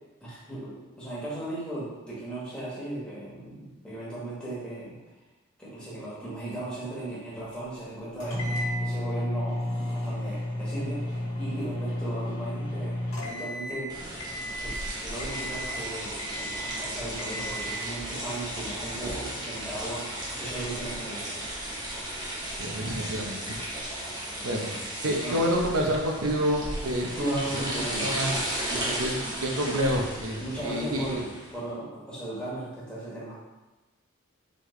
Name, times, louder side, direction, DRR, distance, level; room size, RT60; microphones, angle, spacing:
voice 1, 0.2-5.0 5.6-13.9 14.6-21.5 25.0-25.5 27.2-28.4 28.6-29.1 29.6-29.8 30.4-33.3, right 1 dB, 5° left, -9 dB, 1.3 m, -37 dB
sound 1, 8.2-13.9 14.2-14.8 15.2-15.8 16.2-16.8 17.2-17.8, left 1 dB, 85° left, 1.2 m, -32 dB
sound 2, 13.9-31.6, right 1 dB, 20° right, 0.7 m, -35 dB
voice 2, 22.6-23.8 24.4-24.7 25.0-27.6 28.0-28.5 29.0-31.2, equal, 85° right, 1 dB, 0.7 m, -28 dB
4.2 x 3.1 x 3.2 m, 1.1 s
head